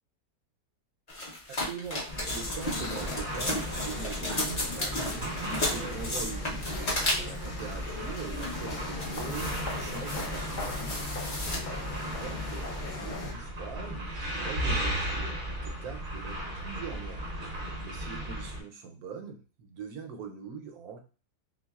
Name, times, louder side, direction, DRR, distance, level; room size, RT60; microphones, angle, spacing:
sound 1, 1.1-7.5 8.1-8.6 9.0-11.6, left 1 dB, 35° left, 0.7 m, -34 dB
voice 1, 1.5-6.6 7.2-11.1 11.5-17.3 17.8-21.0, right 5 dB, 70° right, 3 dB, 1.1 m, -42 dB
sound 2, 2.1-13.3, left 3 dB, 70° left, 0.4 m, -39 dB
sound 3, 2.1-18.6, right 1 dB, 45° right, 0.7 m, -36 dB
6.0 x 2.0 x 2.3 m, 0.35 s
omnidirectional pair, 1.7 m